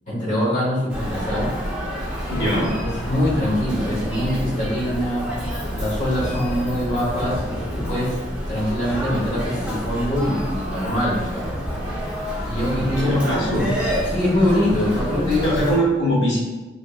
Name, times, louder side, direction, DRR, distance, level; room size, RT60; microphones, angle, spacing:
voice 1, 0.1-1.5 2.3-2.6 3.0-5.3 5.7-8.1 8.5-11.5 12.4-13.2 13.5-13.7 14.1-15.5, left 1 dB, 40° left, -8 dB, 1.0 m, -23 dB
Human voice, 0.9-15.8, equal, 5° right, 0.7 m, -28 dB
voice 2, 2.3-2.7 13.0-13.7 15.4-16.4, equal, 70° left, -7 dB, 1.2 m, -21 dB
3.4 x 3.3 x 2.4 m, 1.2 s
head